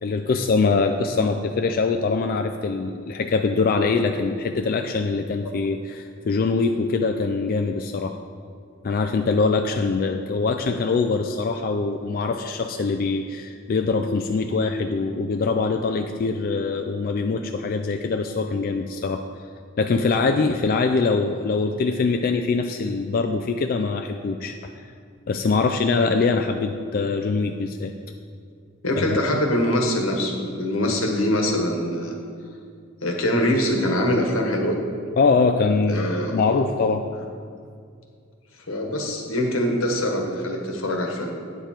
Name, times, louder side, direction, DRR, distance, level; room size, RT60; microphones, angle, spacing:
voice 1, 0.0-8.1 8.8-19.2 19.8-24.5 25.3-27.9 35.2-37.1, left 4 dB, 45° left, 5 dB, 0.4 m, -23 dB
voice 2, 28.8-32.2 33.0-34.8 35.9-36.5 38.7-41.4, left 1 dB, 85° left, 2 dB, 1.3 m, -23 dB
9.3 x 6.9 x 4.4 m, 2.2 s
head